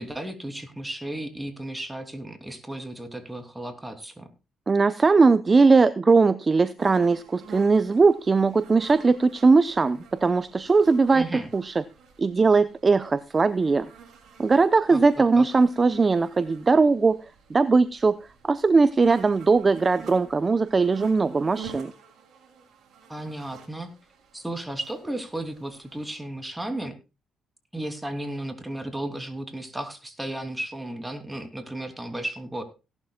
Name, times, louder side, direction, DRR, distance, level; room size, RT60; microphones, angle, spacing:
voice 1, 0.0-4.3 11.1-11.5 14.9-15.5 23.1-23.9 24.3-26.9 27.7-32.6, right 1 dB, 10° right, 7 dB, 3.0 m, -34 dB
voice 2, 4.7-11.3 11.5-11.7 12.2-13.9 14.4-17.2 17.5-21.9, right 4 dB, 30° right, 14 dB, 0.7 m, -20 dB
sound 1, 6.8-26.1, right 5 dB, 65° right, 6.3 m, -48 dB
17.5 x 11.5 x 2.3 m, 0.29 s
cardioid pair, 90°, 0 cm